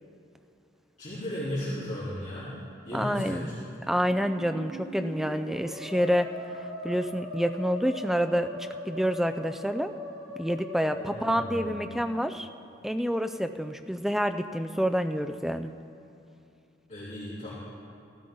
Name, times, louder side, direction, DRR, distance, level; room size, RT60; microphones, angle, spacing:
voice 1, 1.0-2.5 2.8-3.6 11.0-11.9 16.9-17.5, equal, 35° left, -11 dB, 3.2 m, -35 dB
voice 2, 2.9-3.5 3.9-6.3 6.8-8.5 8.9-9.9 10.4-12.5 12.8-15.7, equal, ahead, 8 dB, 0.4 m, -28 dB
Musical instrument, 3.9-12.7, left 1 dB, 50° right, 2.3 m, -41 dB
16.5 x 14.5 x 3.9 m, 2.7 s
head